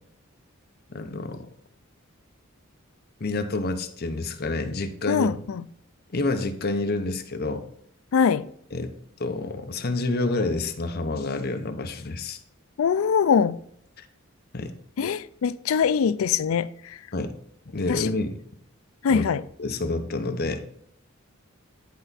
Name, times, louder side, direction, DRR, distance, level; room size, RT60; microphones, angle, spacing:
voice 1, 0.9-1.5 3.2-5.4 6.1-7.6 8.7-8.9 9.2-12.4 14.0-14.1 14.5-14.7 17.1-17.3 17.7-18.4 19.1-19.3 19.6-20.7, left 2 dB, 50° left, 0.8 m, -28 dB
voice 2, 5.1-5.6 8.1-8.5 12.8-13.6 15.0-16.7 17.9-18.1 19.0-19.4, left 6 dB, 75° left, 0.4 m, -22 dB
10.5 x 4.4 x 4.1 m
head